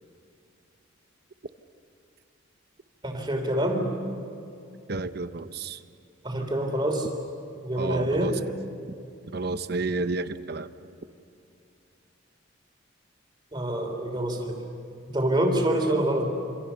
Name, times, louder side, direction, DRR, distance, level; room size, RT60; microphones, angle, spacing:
voice 1, 3.0-3.9 6.2-7.1 7.6-8.4 13.5-14.6 15.1-16.3, right 1 dB, 20° right, 3 dB, 3.3 m, -26 dB
voice 2, 4.9-5.8 7.7-8.3 9.3-10.7, right 3 dB, 50° right, 11 dB, 0.8 m, -30 dB
27.0 x 26.5 x 7.0 m, 2.6 s
head